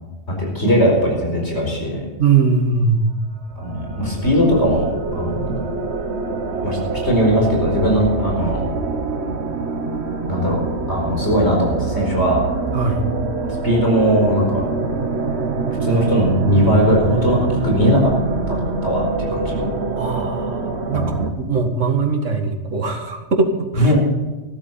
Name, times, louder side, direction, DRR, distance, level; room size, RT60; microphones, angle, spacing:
voice 1, 0.3-2.0 3.6-5.6 6.6-6.8 7.0-8.6 10.3-10.6 10.9-12.4 13.6-14.6 15.8-18.1 18.5-19.7 20.9-21.3 23.8-24.0, equal, 65° left, 0 dB, 5.0 m, -19 dB
voice 2, 2.2-3.1 12.7-13.0 20.0-23.9, right 4 dB, 90° right, 5 dB, 2.2 m, -20 dB
sound 1, 3.3-21.3, right 3 dB, 60° right, 1.5 m, -25 dB
14.5 x 13.0 x 5.5 m, 1.2 s
omnidirectional pair, 1.2 m